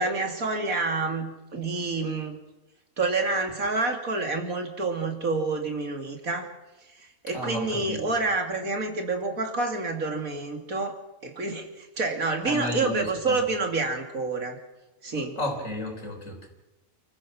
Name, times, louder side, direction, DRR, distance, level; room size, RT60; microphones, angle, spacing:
voice 1, 0.0-2.4 3.0-6.5 7.0-14.6 15.0-15.4, right 3 dB, 90° right, 4 dB, 2.9 m, -28 dB
voice 2, 7.3-8.0 12.4-13.4 15.4-16.5, left 1 dB, 70° left, 3 dB, 4.6 m, -32 dB
29.0 x 15.0 x 6.1 m, 1.0 s
omnidirectional pair, 1.4 m